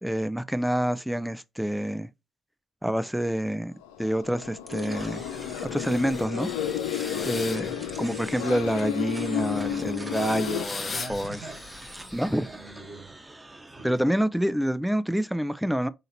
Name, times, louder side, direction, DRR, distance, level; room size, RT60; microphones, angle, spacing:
voice 1, 0.0-2.1 2.8-3.7 4.0-5.2 5.7-6.5 7.3-7.7 8.0-11.4 12.1-12.5 13.8-15.9, equal, 5° right, 0.5 m, -27 dB
sound 1, 3.8-10.7, left 10 dB, 85° left, 0.4 m, -32 dB
sound 2, 4.7-13.8, right 2 dB, 20° right, 1.0 m, -45 dB
sound 3, 4.9-12.8, left 4 dB, 45° left, 0.8 m, -41 dB
voice 2, 7.0-7.5 10.8-11.8 12.4-13.2 13.8-14.1, right 2 dB, 70° right, 1.5 m, -43 dB
4.2 x 3.8 x 2.7 m
hypercardioid pair, 45°, 0 cm